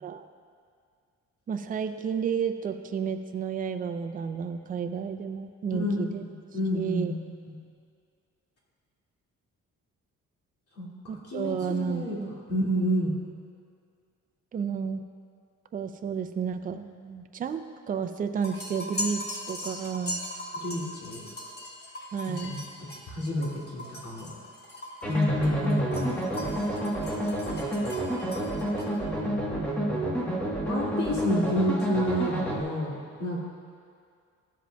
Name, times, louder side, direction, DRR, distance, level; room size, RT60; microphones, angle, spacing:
voice 1, 1.5-6.2 6.7-7.1 11.1-12.3 14.5-15.0 15.7-20.2 22.1-22.6, right 7 dB, 30° right, 8 dB, 0.4 m, -31 dB
voice 2, 5.8-7.2 7.5-7.6 10.8-12.2 12.5-13.2 20.6-21.2 22.3-24.3 25.1-26.9 29.1-30.3 30.6-33.4, equal, 55° left, -6 dB, 2.2 m, -30 dB
sound 1, 18.4-28.9, left 1 dB, 35° left, 1.3 m, -39 dB
sound 2, 25.0-32.6, right 1 dB, 5° left, 1.2 m, -30 dB
13.5 x 7.5 x 2.3 m, 2.2 s
cardioid pair, 125°, 30 cm